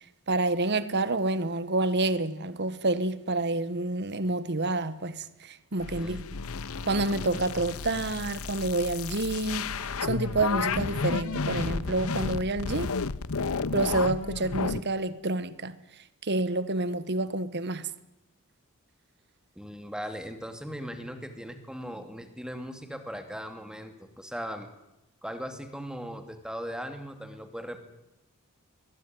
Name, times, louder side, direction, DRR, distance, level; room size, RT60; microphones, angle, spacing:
voice 1, 0.3-6.4 6.8-9.7 10.0-12.9 13.7-15.8 16.2-17.9, right 2 dB, 50° right, 1.4 m, -28 dB
sound 1, 5.8-14.8, left 4 dB, 70° left, 0.8 m, -32 dB
voice 2, 19.6-24.7 25.2-27.8, equal, 5° right, 2.6 m, -38 dB
22.5 x 20.5 x 9.6 m
head